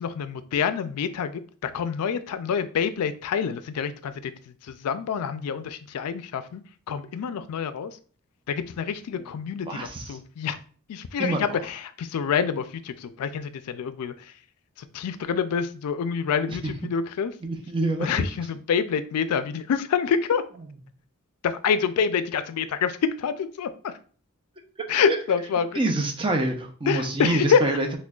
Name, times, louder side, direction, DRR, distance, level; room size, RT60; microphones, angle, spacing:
voice 1, 0.0-4.3 4.7-6.6 6.9-7.9 8.5-10.6 10.9-14.1 14.8-17.3 18.0-20.4 21.4-23.9 24.9-25.7 26.9-27.6, left 6 dB, 85° left, 12 dB, 0.3 m, -27 dB
voice 2, 9.7-10.2 11.2-11.6 16.5-16.7 17.4-18.3 25.1-25.2 25.7-28.0, right 2 dB, 25° right, 3 dB, 0.5 m, -27 dB
6.0 x 2.2 x 2.3 m, 0.42 s
head